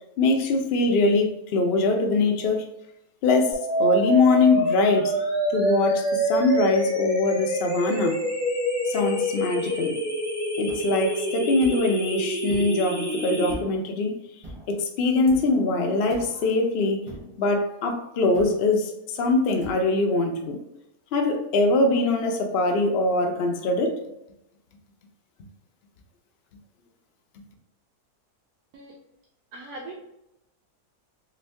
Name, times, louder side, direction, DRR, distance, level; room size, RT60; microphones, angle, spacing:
voice 1, 0.2-2.6 3.2-5.1 5.5-8.2 8.8-9.9 10.6-14.2 14.7-17.0 17.4-20.6 21.1-24.0, left 3 dB, 80° left, 3 dB, 0.5 m, -23 dB
sound 1, 3.5-13.5, right 1 dB, 15° left, 1.2 m, -26 dB
sound 2, 10.7-10.8 11.6-11.8 12.5-12.8 13.5-13.9 14.4-14.7 15.3-15.6 16.1-16.4 17.1-17.4 18.3-18.6 19.6-19.8, right 2 dB, 35° right, 0.5 m, -40 dB
voice 2, 29.5-29.9, right 2 dB, 80° right, -3 dB, 1.2 m, -40 dB
3.0 x 2.6 x 3.2 m, 0.85 s
omnidirectional pair, 1.7 m